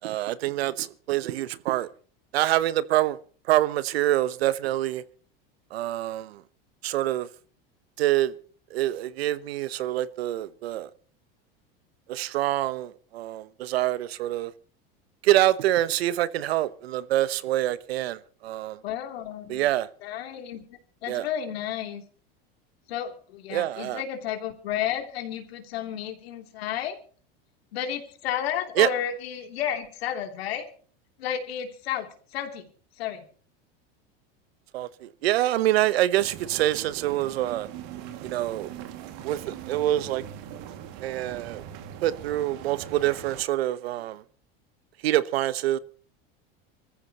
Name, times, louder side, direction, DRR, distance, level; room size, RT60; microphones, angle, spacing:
voice 1, 0.0-1.9 2.3-3.2 3.5-5.0 5.7-6.4 6.8-7.3 8.0-8.3 8.7-10.9 12.1-14.5 15.2-18.8 19.5-19.9 21.1-21.3 23.5-24.0 28.8-28.9 34.7-37.7 38.2-38.7 39.0-40.2 41.0-41.6 42.0-44.2 45.0-45.8, right 14 dB, 85° right, 1.0 m, -26 dB
voice 2, 18.8-19.7 20.0-20.6 21.0-22.0 22.9-27.0 27.7-30.7 31.2-32.7 33.0-33.2, left 10 dB, 85° left, 3.2 m, -32 dB
sound 1, 36.2-43.4, right 10 dB, 65° right, 2.3 m, -41 dB
25.5 x 14.5 x 3.0 m
supercardioid pair, 115°, 30 cm